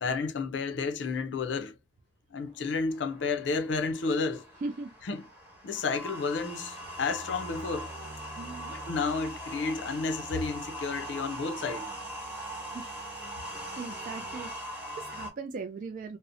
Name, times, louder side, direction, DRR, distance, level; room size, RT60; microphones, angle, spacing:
voice 1, 0.0-1.8 2.3-4.5 5.1-5.2 5.6-7.9 8.7-11.9, left 4 dB, 70° left, 0.5 m, -31 dB
sound 1, 2.5-15.3, right 1 dB, 10° right, 0.9 m, -41 dB
voice 2, 4.6-4.9 8.4-8.8 12.7-13.0 13.8-16.2, right 3 dB, 45° right, 0.3 m, -39 dB
2.7 x 2.0 x 2.5 m
head